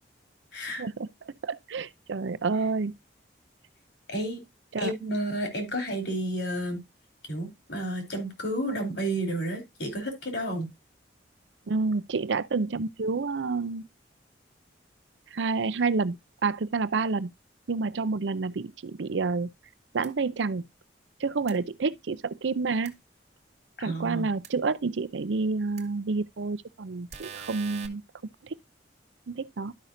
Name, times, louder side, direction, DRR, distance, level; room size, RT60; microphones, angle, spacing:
voice 1, 0.5-0.8 4.1-4.4 4.8-6.8 7.3-10.7 23.8-24.3, right 1 dB, 70° left, 3.6 m, -31 dB
voice 2, 1.4-2.9 4.7-4.9 11.7-13.8 15.3-16.2 16.4-17.3 17.7-19.5 19.9-20.6 21.2-22.9 23.8-28.0 29.3-29.7, right 4 dB, 80° right, 0.6 m, -29 dB
sound 1, 20.0-20.1 21.5-21.6 22.8-22.9 24.4-24.5 25.8-25.9 27.1-27.9, right 6 dB, 40° right, 1.5 m, -41 dB
12.5 x 5.8 x 2.6 m
head